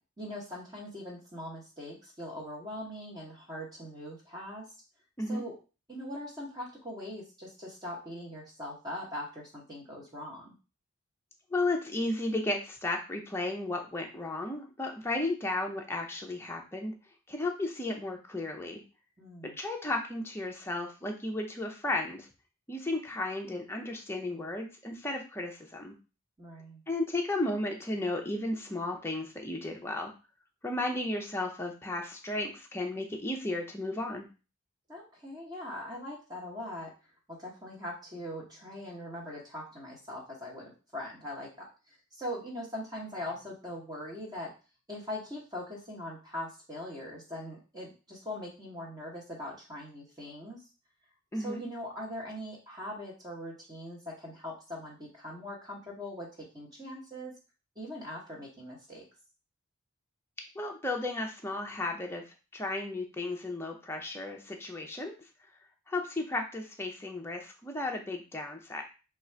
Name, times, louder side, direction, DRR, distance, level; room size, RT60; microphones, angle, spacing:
voice 1, 0.2-4.6 5.3-5.6 5.9-10.5 19.2-19.6 26.4-26.8 34.9-36.9 37.3-44.5 44.9-50.6 51.4-57.3 57.8-59.0, left 1 dB, 15° right, -3 dB, 0.9 m, -41 dB
voice 2, 11.5-16.9 17.3-18.8 19.4-22.3 22.7-25.9 26.9-30.1 30.6-34.3 51.3-51.6 60.5-62.2 62.5-65.1 65.9-68.8, left 2 dB, 10° left, 1 dB, 0.5 m, -34 dB
3.7 x 2.4 x 4.4 m, 0.33 s
head